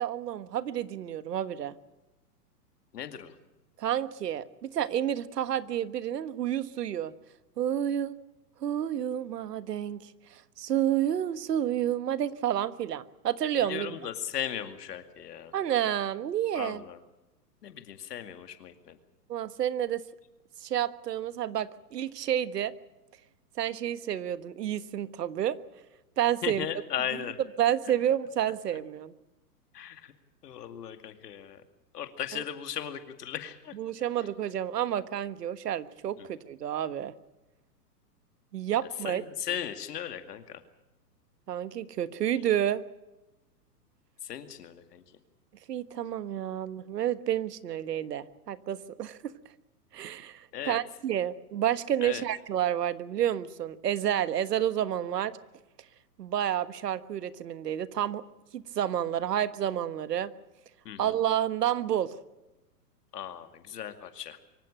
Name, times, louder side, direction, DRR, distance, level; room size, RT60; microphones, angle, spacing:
voice 1, 0.0-1.7 3.8-7.1 7.6-8.2 8.6-14.0 15.5-16.8 19.3-20.0 20.6-22.7 23.6-25.6 26.2-26.7 27.6-29.1 32.3-32.4 33.8-37.1 38.5-39.2 41.5-42.8 45.7-49.3 49.9-55.4 56.2-58.2 58.5-60.3 61.0-62.2, right 10 dB, 75° right, 14 dB, 1.5 m, -30 dB
voice 2, 2.9-3.4 13.6-15.5 16.5-17.0 17.6-19.0 26.4-27.4 29.7-30.1 30.4-31.6 31.9-33.7 36.2-36.3 39.0-40.6 44.2-45.0 50.5-50.8 52.0-52.2 60.8-61.2 63.1-64.4, left 9 dB, 75° left, 8 dB, 2.4 m, -37 dB
24.5 x 15.0 x 8.8 m, 1.0 s
hypercardioid pair, 145°, 48 cm